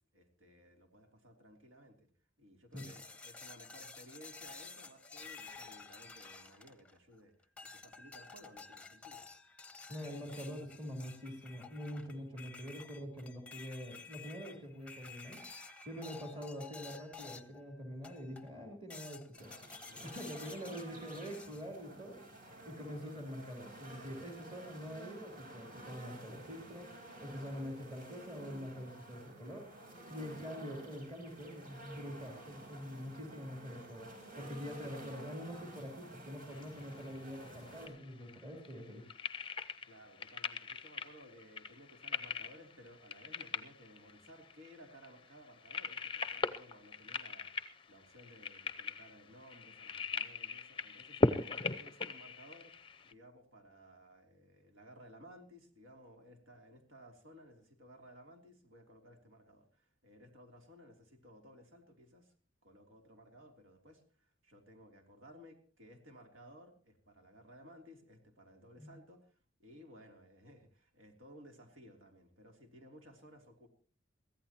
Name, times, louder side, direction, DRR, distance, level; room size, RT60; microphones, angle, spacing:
voice 1, 0.1-2.1 2.4-9.3 19.8-20.3 26.3-26.7 39.9-62.3 62.6-73.7, equal, 75° right, 3 dB, 3.4 m, -58 dB
sound 1, 2.8-7.1 7.6-17.6 18.0-18.5 18.9-21.6, left 4 dB, 5° left, 0.9 m, -52 dB
voice 2, 9.9-15.4 15.9-22.2 22.6-26.9 27.2-29.7 30.1-34.1 34.4-39.0 68.8-68.9, equal, 30° right, 1 dB, 3.6 m, -45 dB
sound 2, 19.4-37.9, right 1 dB, 45° right, 5.3 m, -52 dB
sound 3, 36.5-53.1, left 3 dB, 25° left, 0.6 m, -39 dB
22.5 x 15.5 x 3.0 m, 0.39 s
head